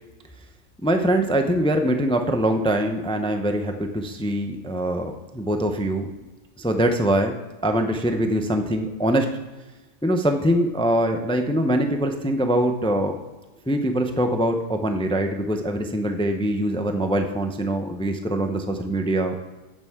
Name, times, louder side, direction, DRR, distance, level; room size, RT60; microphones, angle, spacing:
voice 1, 0.8-6.1 6.6-7.4 7.6-9.3 10.0-13.1 13.7-19.3, right 1 dB, 5° left, 5 dB, 0.5 m, -23 dB
11.0 x 8.8 x 3.6 m, 1.2 s
omnidirectional pair, 1.3 m